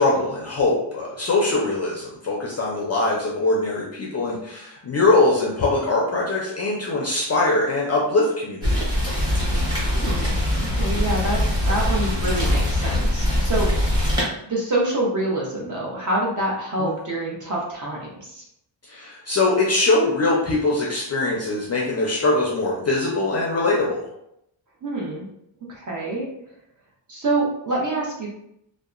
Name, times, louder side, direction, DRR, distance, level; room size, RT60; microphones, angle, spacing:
voice 1, 0.0-9.0 16.8-16.9 18.9-24.1, left 2 dB, 35° left, -4 dB, 0.4 m, -22 dB
Rain, 8.6-14.2, left 1 dB, 10° right, 0.9 m, -22 dB
voice 2, 9.9-10.3 10.8-13.7 14.5-18.4 24.8-25.3 25.7-26.3 27.1-28.3, right 2 dB, 40° right, -3 dB, 0.8 m, -26 dB
2.7 x 2.1 x 2.4 m, 0.78 s
wide cardioid pair, 150°, 47 cm